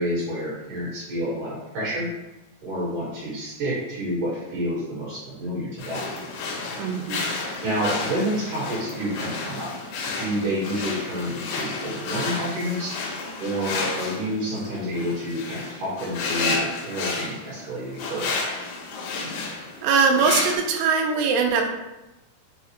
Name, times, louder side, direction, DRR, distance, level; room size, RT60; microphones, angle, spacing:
voice 1, 0.0-2.1 2.6-6.0 7.6-9.7 10.1-12.9 13.4-18.4, equal, 60° right, -7 dB, 2.5 m, -29 dB
sound 1, 5.8-20.6, left 3 dB, 80° left, 2.3 m, -31 dB
voice 2, 6.8-7.2 19.5-21.7, right 5 dB, 85° right, 3 dB, 2.6 m, -22 dB
6.2 x 2.4 x 2.9 m, 1.0 s
omnidirectional pair, 4.8 m